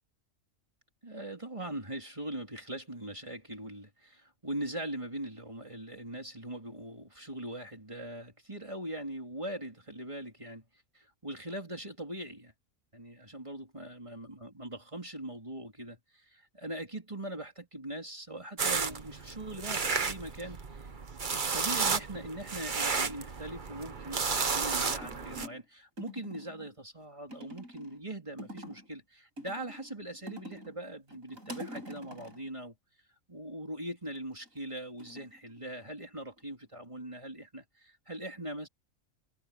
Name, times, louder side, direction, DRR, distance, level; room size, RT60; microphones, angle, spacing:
voice 1, 1.0-10.6 10.9-12.5 12.9-20.9 21.3-32.8 33.3-38.7, right 1 dB, 25° right, 3.5 m, -41 dB
sound 1, 18.6-25.5, right 5 dB, 40° right, 1.2 m, -32 dB
sound 2, 25.0-25.6 26.0-26.7 27.3-28.0 28.4-28.9 29.4-30.8 31.1-32.5 34.1-34.5 35.0-36.1 36.4-36.9, equal, 90° right, 7.1 m, -46 dB
omnidirectional pair, 1.4 m